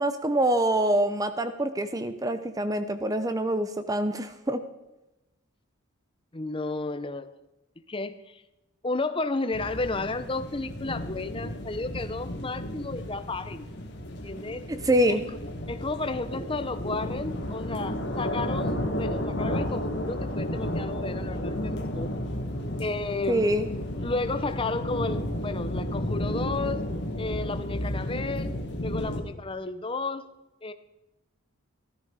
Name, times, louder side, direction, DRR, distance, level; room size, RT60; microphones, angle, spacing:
voice 1, 0.0-4.6 14.7-15.3 23.3-23.7, right 1 dB, 15° right, 10 dB, 0.6 m, -25 dB
voice 2, 6.3-7.3 7.9-8.4 8.8-13.7 14.2-14.6 15.1-15.2 15.7-22.1 22.8-23.6 24.0-26.8 27.2-30.3 30.6-30.7, left 3 dB, 25° left, 11 dB, 0.7 m, -32 dB
sound 1, 9.5-29.2, left 1 dB, 55° left, 1.9 m, -32 dB
14.5 x 13.0 x 4.8 m, 0.98 s
head